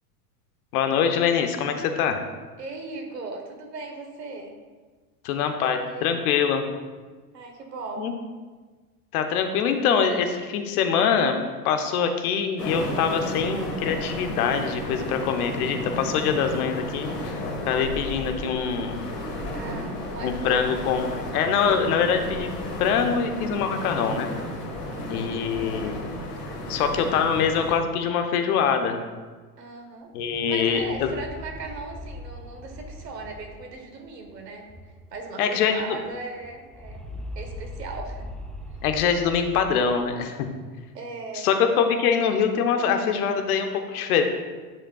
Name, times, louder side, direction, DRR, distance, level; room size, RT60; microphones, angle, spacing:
voice 1, 0.7-2.2 5.2-6.6 8.0-8.1 9.1-11.4 11.6-17.4 17.7-19.1 20.2-22.5 22.8-24.3 25.1-26.0 26.7-29.0 30.1-30.8 35.4-36.0 38.8-40.5 41.3-44.2, left 7 dB, 65° left, 6 dB, 1.1 m, -24 dB
voice 2, 2.6-4.5 5.3-6.3 7.3-8.1 19.5-20.6 24.9-25.5 29.6-30.1 30.5-34.7 35.1-37.0 37.3-38.2 40.9-41.5, right 3 dB, 90° right, 2 dB, 1.5 m, -38 dB
sound 1, 12.6-27.8, left 1 dB, 85° left, 1.8 m, -33 dB
sound 2, 30.1-35.4 35.6-35.7 36.0-40.3, left 1 dB, ahead, 0.5 m, -41 dB
9.9 x 7.4 x 2.4 m, 1.4 s
hypercardioid pair, 85°, 47 cm